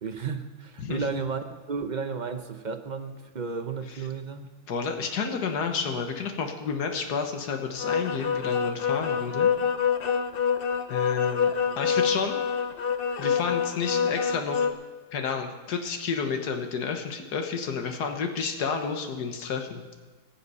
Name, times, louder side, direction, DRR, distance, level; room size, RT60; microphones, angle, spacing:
voice 1, 0.0-4.5, right 5 dB, 50° right, 7 dB, 0.5 m, -33 dB
voice 2, 4.7-9.5 10.9-12.4 13.2-14.7 15.1-19.8, left 5 dB, 85° left, 5 dB, 1.7 m, -30 dB
sound 1, 7.8-14.7, left 7 dB, 55° left, 0.6 m, -26 dB
20.5 x 7.4 x 5.6 m, 1.3 s
omnidirectional pair, 1.7 m